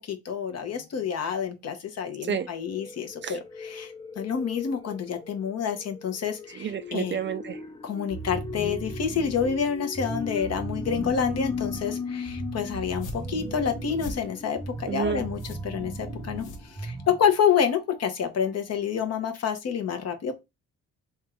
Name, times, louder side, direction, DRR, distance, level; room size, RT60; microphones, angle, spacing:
voice 1, 0.1-7.2 7.8-16.5 16.8-20.3, left 7 dB, 55° left, 1.0 m, -28 dB
sound 1, 0.8-1.0 2.1-18.0 18.5-18.6 18.7-18.8, left 4 dB, 15° left, 0.5 m, -39 dB
voice 2, 6.5-7.6 14.9-15.3, right 8 dB, 40° right, 0.4 m, -30 dB
sound 2, 8.1-17.3, right 2 dB, 5° right, 0.9 m, -37 dB
sound 3, 12.8-17.3, left 1 dB, 85° left, 1.0 m, -44 dB
3.5 x 2.5 x 4.4 m
cardioid pair, 90°, 30 cm